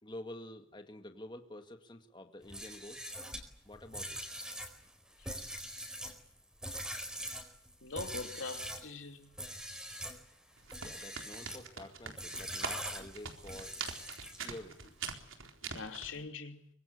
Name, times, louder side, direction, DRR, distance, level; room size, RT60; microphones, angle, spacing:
voice 1, 0.0-3.1 3.6-4.2 10.8-13.7 14.4-14.9, left 1 dB, 25° left, 2.0 m, -48 dB
Milking an animal, 2.4-8.9 9.3-10.2 10.6-11.7 12.2-14.6, equal, 5° right, 4.4 m, -43 dB
voice 2, 7.8-9.4 15.6-16.7, left 4 dB, 80° left, 3.0 m, -43 dB
sound 1, 10.6-16.2, right 6 dB, 85° right, 4.1 m, -42 dB
24.5 x 23.5 x 8.3 m
head